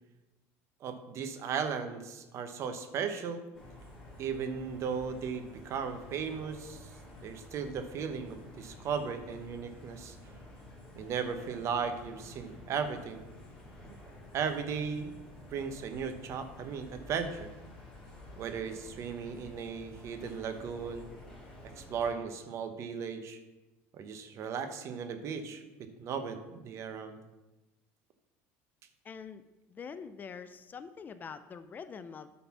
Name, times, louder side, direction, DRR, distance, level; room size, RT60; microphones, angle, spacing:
voice 1, 0.8-3.4 4.2-6.9 7.2-10.2 11.0-13.2 13.8-14.0 14.3-15.1 15.5-17.5 18.3-21.1 21.6-23.4 23.9-27.2, right 6 dB, 50° right, 8 dB, 0.9 m, -36 dB
sound 1, 3.5-22.1, left 1 dB, 10° left, 2.8 m, -51 dB
voice 2, 29.0-29.4 29.7-32.3, left 6 dB, 30° left, 12 dB, 0.4 m, -44 dB
9.3 x 4.1 x 5.9 m, 1.1 s
supercardioid pair, 115°, 6 cm